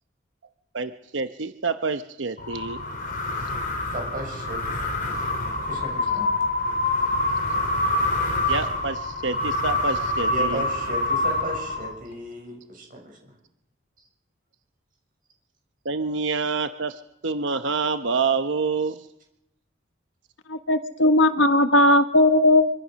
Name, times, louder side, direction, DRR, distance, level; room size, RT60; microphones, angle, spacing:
voice 1, 0.7-2.8 3.4-3.5 8.5-10.6 15.8-19.1, right 4 dB, 75° right, 9 dB, 0.9 m, -27 dB
sound 1, 2.4-12.1, left 2 dB, 45° left, 4.6 m, -26 dB
voice 2, 3.9-4.8 5.6-6.3 10.3-13.3, equal, 45° right, 2 dB, 7.0 m, -35 dB
voice 3, 20.5-22.7, left 1 dB, 80° left, 9 dB, 1.6 m, -18 dB
25.0 x 24.5 x 6.4 m, 0.83 s
head